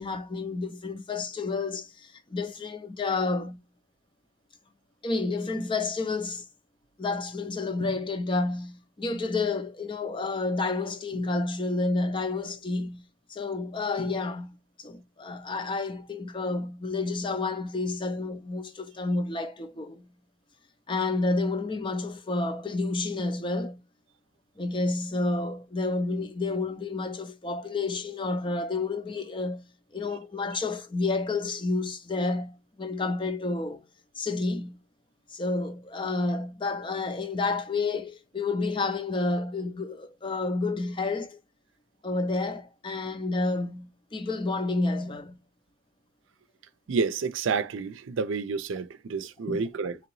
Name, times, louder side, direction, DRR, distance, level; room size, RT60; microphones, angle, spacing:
voice 1, 0.0-3.6 5.0-6.5 7.0-13.0 13.3-20.1 20.9-23.8 24.6-29.6 29.9-33.8 34.2-34.8 35.3-41.4 42.0-45.4 49.4-49.6, left 3 dB, 25° left, 0.5 m, -30 dB
voice 2, 46.9-50.0, right 5 dB, 85° right, 0.5 m, -29 dB
3.9 x 3.0 x 3.0 m
head